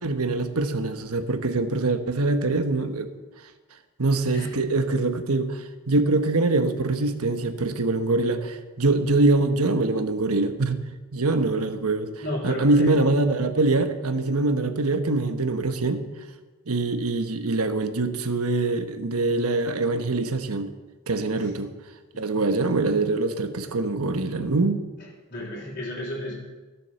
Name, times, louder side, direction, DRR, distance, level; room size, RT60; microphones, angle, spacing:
voice 1, 0.0-3.1 4.0-10.8 11.1-12.1 12.4-16.0 16.7-20.7 21.1-21.7 22.2-24.8, right 2 dB, 80° right, 8 dB, 1.1 m, -24 dB
voice 2, 12.2-12.9 21.3-21.5 22.1-22.4 25.3-26.3, left 1 dB, 45° left, -9 dB, 3.5 m, -33 dB
15.0 x 7.7 x 6.9 m, 1.2 s
head